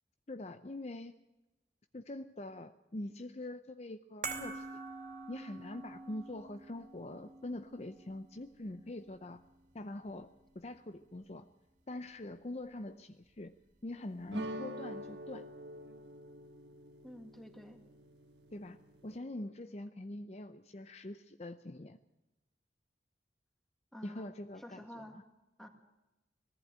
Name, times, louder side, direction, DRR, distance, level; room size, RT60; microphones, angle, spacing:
voice 1, 0.3-1.1 1.9-4.7 5.3-9.4 9.7-11.5 11.9-13.5 13.8-15.5 18.5-18.8 19.0-22.0 24.0-25.2, left 1 dB, 35° left, 9 dB, 0.6 m, -44 dB
sound 1, 4.2-10.6 10.9-11.1, right 4 dB, 45° right, 2.6 m, -47 dB
sound 2, 14.3-19.2, equal, 85° right, 1.6 m, -46 dB
voice 2, 17.0-17.8 23.9-25.2 25.6-25.7, equal, ahead, 4 dB, 2.1 m, -50 dB
20.0 x 15.0 x 8.8 m, 1.0 s
head